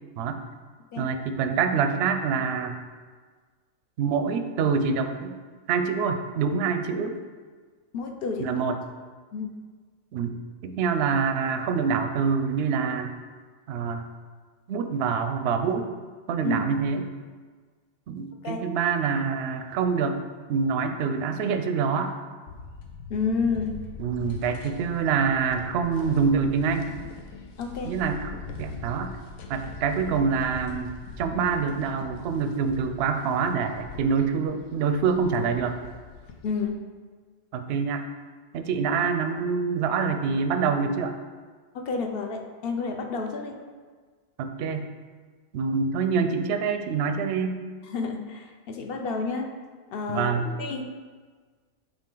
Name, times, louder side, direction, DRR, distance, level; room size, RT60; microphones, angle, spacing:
voice 1, 1.0-2.8 4.0-5.4 5.7-7.2 8.4-8.8 10.1-10.4 10.6-13.1 13.7-14.1 14.7-15.9 16.3-17.0 18.1-20.2 20.5-22.1 24.0-26.9 27.8-29.1 29.5-35.8 37.5-38.0 38.5-41.1 44.4-44.9 45.5-47.6 50.1-50.5, right 5 dB, 65° right, 7 dB, 0.7 m, -26 dB
voice 2, 7.9-8.5 9.3-9.5 16.4-16.6 18.4-18.6 23.1-23.8 27.6-27.9 36.4-36.8 41.7-43.6 47.8-49.5 49.9-50.3 50.6-50.8, left 4 dB, 55° left, 4 dB, 0.7 m, -30 dB
sound 1, 22.5-36.7, left 5 dB, 85° left, 1.1 m, -42 dB
8.9 x 3.6 x 3.8 m, 1.5 s
omnidirectional pair, 1.4 m